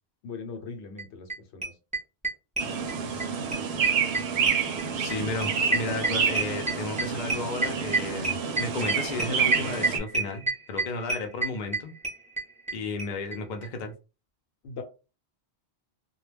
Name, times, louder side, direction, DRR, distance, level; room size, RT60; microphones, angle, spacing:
voice 1, 0.2-1.7 14.6-14.8, left 5 dB, 85° left, 0.9 m, -40 dB
sound 1, 1.0-1.1 1.3-1.4 1.6-3.3 3.5-12.7 13.0-13.1 13.3-13.4 13.6-13.7, right 3 dB, 10° right, 0.6 m, -28 dB
sound 2, 2.6-10.0, right 6 dB, 75° right, 0.8 m, -28 dB
voice 2, 5.0-11.9 12.7-13.9, left 3 dB, 50° left, 0.6 m, -33 dB
2.2 x 2.1 x 3.2 m
omnidirectional pair, 1.1 m